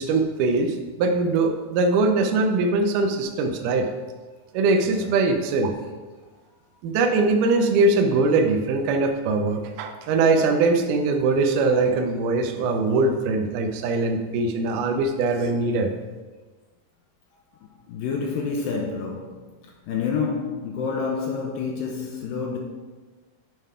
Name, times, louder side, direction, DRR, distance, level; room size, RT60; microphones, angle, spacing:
voice 1, 0.0-3.9 4.5-5.7 6.8-15.9, right 3 dB, 90° right, 1.8 m, -22 dB
voice 2, 4.8-5.4 17.9-19.4 19.9-22.6, left 5 dB, 80° left, 2.2 m, -28 dB
9.3 x 5.5 x 3.6 m
omnidirectional pair, 4.6 m